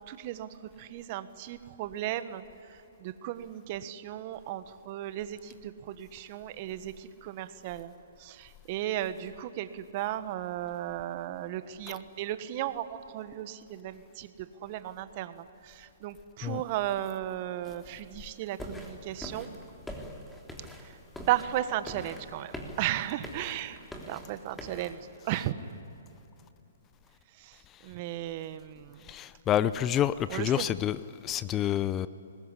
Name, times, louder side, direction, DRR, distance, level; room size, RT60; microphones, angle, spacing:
voice 1, 0.1-2.4 2.7-7.9 8.2-19.5 20.8-20.9 21.3-23.8 24.1-25.0 25.2-25.6 27.4-27.6 27.8-29.1 30.3-30.7, right 13 dB, 40° right, 12 dB, 1.3 m, -35 dB
sound 1, 18.6-25.0, equal, 5° left, 3.3 m, -44 dB
voice 2, 29.1-32.1, left 11 dB, 25° left, 15 dB, 0.6 m, -28 dB
24.5 x 20.5 x 10.0 m, 2.9 s
hypercardioid pair, 130°, 0 cm